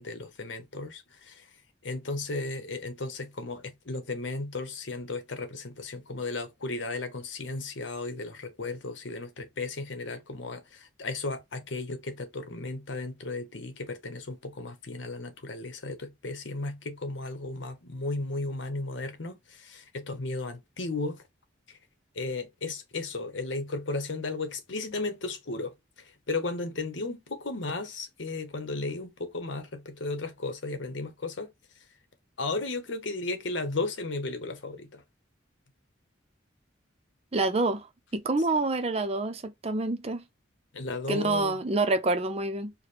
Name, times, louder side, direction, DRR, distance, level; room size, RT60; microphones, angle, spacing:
voice 1, 0.0-1.5 1.8-21.2 21.7-21.8 22.1-31.5 32.4-35.0 40.7-41.6, left 3 dB, 80° left, 1.0 m, -35 dB
voice 2, 37.3-37.9 38.1-40.2 41.1-42.7, right 2 dB, 35° right, 0.5 m, -27 dB
4.8 x 2.2 x 3.3 m
head